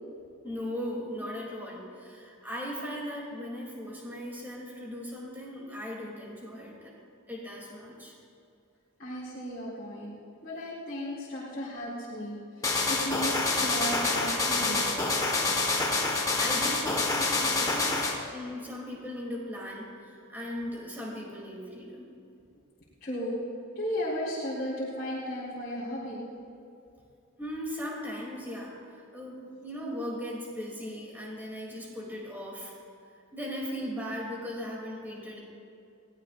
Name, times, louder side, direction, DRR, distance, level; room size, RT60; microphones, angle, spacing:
voice 1, 0.4-6.9 7.3-8.1 16.1-17.9 18.3-22.1 27.4-32.7 33.3-35.4, equal, 10° right, -3 dB, 2.8 m, -38 dB
voice 2, 9.0-15.0 23.0-23.4 23.8-26.2, equal, 45° left, -11 dB, 4.0 m, -35 dB
sound 1, 12.6-18.2, left 3 dB, 15° left, 1.4 m, -27 dB
22.0 x 17.5 x 2.5 m, 2.6 s
head